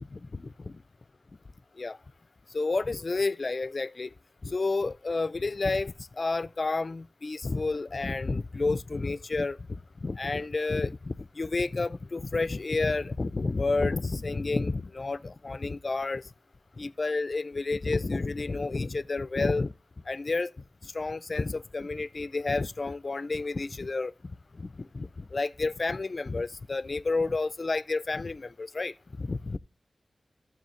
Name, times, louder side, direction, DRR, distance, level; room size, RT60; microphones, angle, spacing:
voice 1, 0.1-0.8 1.8-2.0 2.5-4.1 4.4-16.2 16.8-19.7 20.1-20.5 20.8-24.1 24.5-29.6, left 3 dB, 55° left, 0.4 m, -30 dB
12.5 x 7.1 x 3.1 m
cardioid pair, 45°, 0 cm